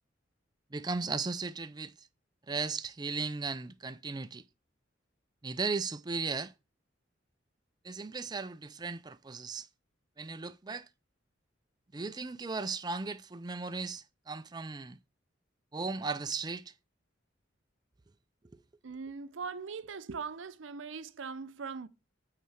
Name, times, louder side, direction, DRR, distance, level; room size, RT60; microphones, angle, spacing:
voice 1, 0.7-2.1 2.5-4.4 5.4-6.5 7.8-9.7 10.2-10.9 11.9-15.0 15.7-16.7, right 4 dB, 20° right, 0.4 m, -36 dB
voice 2, 18.8-21.9, right 5 dB, 85° right, 0.6 m, -40 dB
9.0 x 4.2 x 6.2 m
head